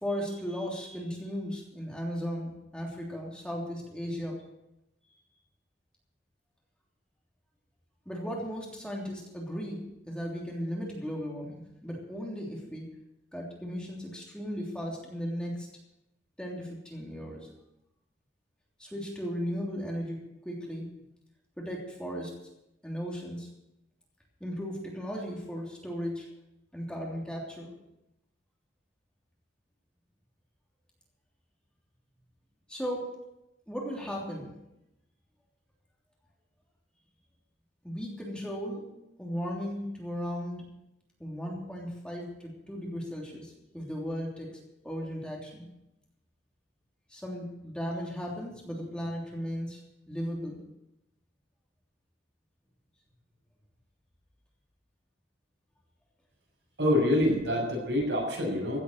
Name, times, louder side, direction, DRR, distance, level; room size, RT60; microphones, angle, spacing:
voice 1, 0.0-4.4 8.0-12.9 13.3-15.7 16.4-17.5 18.8-20.9 21.6-22.3 22.8-23.5 24.4-26.3 26.7-27.7 32.7-33.1 33.7-34.5 37.8-38.8 39.2-40.6 41.2-44.5 44.8-45.7 47.1-49.8 50.1-50.6, equal, 5° left, -3 dB, 3.2 m, -36 dB
voice 2, 56.8-58.8, left 1 dB, 80° right, 0 dB, 6.5 m, -26 dB
16.0 x 8.6 x 8.0 m, 0.88 s
head